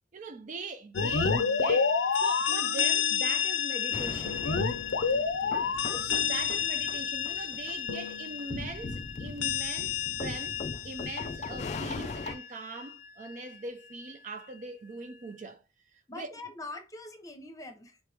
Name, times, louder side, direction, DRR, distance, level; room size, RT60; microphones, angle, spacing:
voice 1, 0.1-1.9 2.2-4.5 5.9-10.6 10.8-15.6 15.9-16.3, right 3 dB, 40° right, 0.4 m, -41 dB
sound 1, 0.9-12.5, left 6 dB, 85° left, 0.6 m, -30 dB
sound 2, 3.9-12.4, left 3 dB, 40° left, 0.4 m, -40 dB
voice 2, 5.1-5.8 16.1-18.0, left 2 dB, 20° left, 0.8 m, -44 dB
4.1 x 3.1 x 3.4 m
head